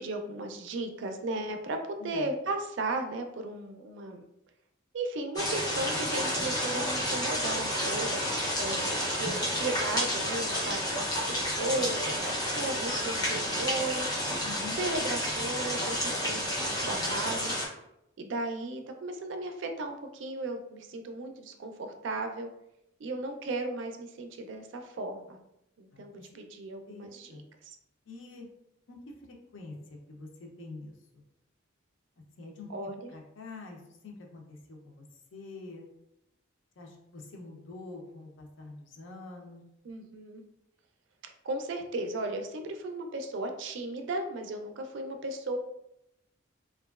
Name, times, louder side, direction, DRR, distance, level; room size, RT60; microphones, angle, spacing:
voice 1, 0.0-4.2 4.9-14.1 14.8-17.5 18.2-22.5 23.0-25.4 25.8-27.8 32.7-33.1 39.8-40.4 41.4-45.6, right 2 dB, 65° right, 5 dB, 0.4 m, -35 dB
sound 1, 5.4-17.7, equal, 20° left, 0.5 m, -30 dB
voice 2, 14.4-14.8 25.9-26.4 26.9-27.4 28.1-28.5 28.9-29.0 29.5-31.2 32.4-35.0 35.3-35.9 36.8-39.6, left 3 dB, 70° left, 1 dB, 0.5 m, -46 dB
2.9 x 2.3 x 2.3 m, 0.82 s
head